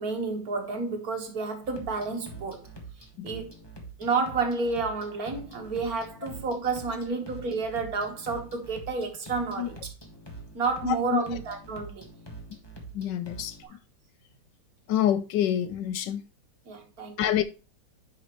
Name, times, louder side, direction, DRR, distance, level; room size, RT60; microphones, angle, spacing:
voice 1, 0.0-2.7 3.2-3.5 4.0-9.8 10.5-12.1 13.6-13.8 16.7-17.4, right 4 dB, 55° right, 1.7 m, -30 dB
sound 1, 1.6-13.6, right 2 dB, 15° left, 1.3 m, -45 dB
voice 2, 10.8-11.2 12.9-13.6 14.9-16.3 17.2-17.4, left 11 dB, 75° left, 1.1 m, -27 dB
9.5 x 5.1 x 3.0 m
omnidirectional pair, 2.0 m